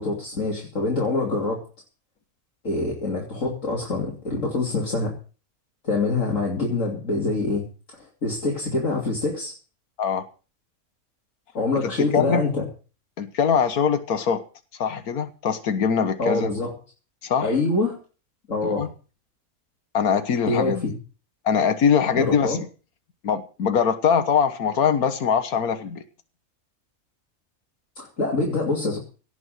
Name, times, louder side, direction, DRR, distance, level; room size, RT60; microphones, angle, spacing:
voice 1, 0.0-1.6 2.6-5.1 5.8-7.7 8.0-9.5 11.5-12.7 16.2-16.7 17.4-18.0 18.5-18.9 20.5-20.9 22.1-22.6 28.0-29.0, left 3 dB, 60° left, -2 dB, 3.3 m, -25 dB
voice 2, 11.8-12.5 13.2-14.4 14.8-16.5 17.2-17.5 18.6-18.9 19.9-20.8 21.4-22.6 23.2-26.0, left 7 dB, 85° left, 10 dB, 1.7 m, -22 dB
17.5 x 6.1 x 7.7 m, 0.36 s
omnidirectional pair, 1.5 m